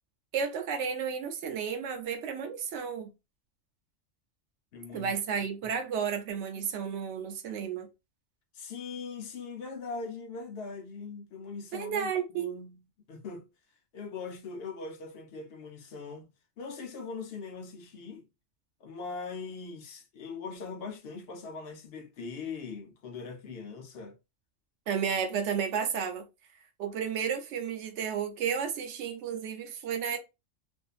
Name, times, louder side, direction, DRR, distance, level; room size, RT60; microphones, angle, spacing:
voice 1, 0.3-3.1 4.9-7.9 11.7-12.6 24.9-26.3 26.8-30.2, right 7 dB, 75° right, 0.9 m, -32 dB
voice 2, 4.7-5.1 8.5-12.8 13.1-13.5 13.9-16.3 16.6-18.3 18.8-24.2, left 4 dB, 60° left, 0.8 m, -41 dB
2.6 x 2.4 x 2.3 m
omnidirectional pair, 1.2 m